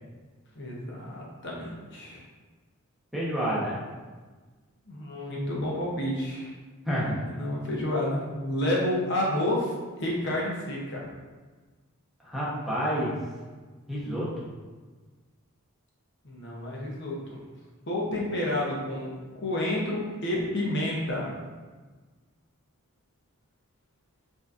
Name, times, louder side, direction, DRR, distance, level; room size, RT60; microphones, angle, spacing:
voice 1, 0.5-2.2 4.9-6.5 7.3-11.1 16.2-17.4 17.9-21.3, left 1 dB, 55° left, -4 dB, 0.8 m, -30 dB
voice 2, 3.1-3.8 6.9-7.2 12.2-13.1 13.9-14.5, equal, ahead, -8 dB, 0.9 m, -29 dB
5.9 x 2.7 x 2.5 m, 1.4 s
head